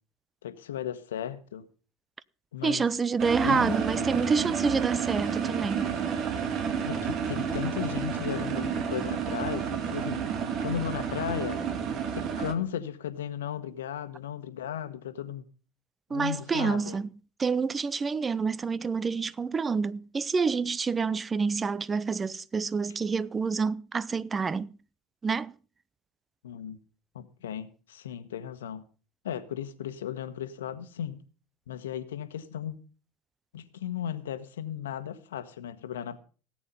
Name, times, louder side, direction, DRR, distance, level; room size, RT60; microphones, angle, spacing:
voice 1, 0.4-1.7 2.5-2.8 3.4-3.8 6.8-10.2 10.6-11.6 12.1-15.4 16.1-17.0 26.4-26.8 27.1-28.8 29.2-31.2 31.7-32.8 33.5-36.2, left 9 dB, 80° left, 1.3 m, -35 dB
voice 2, 2.6-5.9 16.1-17.1 17.4-24.7 25.2-25.5, right 5 dB, 25° right, 0.7 m, -28 dB
sound 1, 3.2-12.5, right 7 dB, 50° right, 2.2 m, -30 dB
17.5 x 8.6 x 5.5 m
hypercardioid pair, 75°, 0 cm